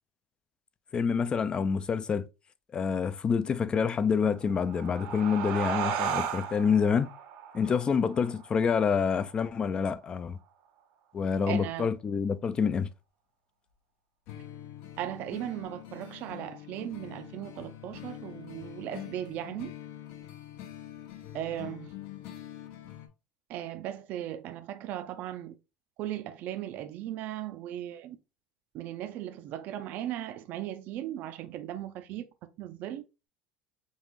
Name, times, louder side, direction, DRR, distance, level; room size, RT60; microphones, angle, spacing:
voice 1, 0.9-2.3 2.7-7.1 7.5-10.4 11.1-12.9, left 6 dB, 25° left, 0.3 m, -27 dB
sound 1, 4.4-9.6, right 8 dB, 85° right, 1.1 m, -35 dB
voice 2, 11.5-11.9 15.0-19.7 21.3-21.9 23.5-25.5 26.0-28.2 28.7-32.2 32.6-33.0, right 12 dB, 55° right, 0.5 m, -37 dB
sound 2, 14.3-23.1, left 12 dB, 65° left, 0.7 m, -45 dB
5.2 x 2.4 x 3.1 m
cardioid pair, 140°, 4 cm